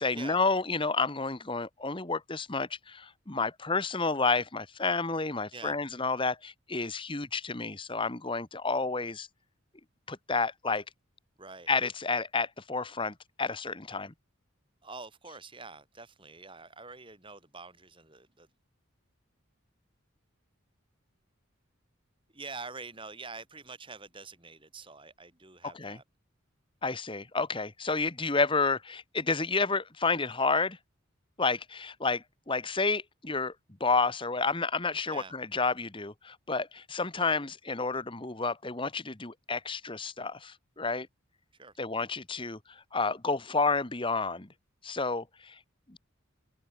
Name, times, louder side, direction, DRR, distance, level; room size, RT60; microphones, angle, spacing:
voice 1, 0.0-9.3 10.1-10.8 11.7-14.1 25.8-26.0 26.8-30.8 31.4-33.5 33.8-41.1 41.8-44.5 44.8-45.6 45.9-46.0, left 4 dB, 25° left, 1.3 m, -30 dB
voice 2, 11.4-11.7 14.8-18.5 22.3-26.0 35.1-35.3 41.5-41.7, right 4 dB, 25° right, 5.3 m, -46 dB
open air
head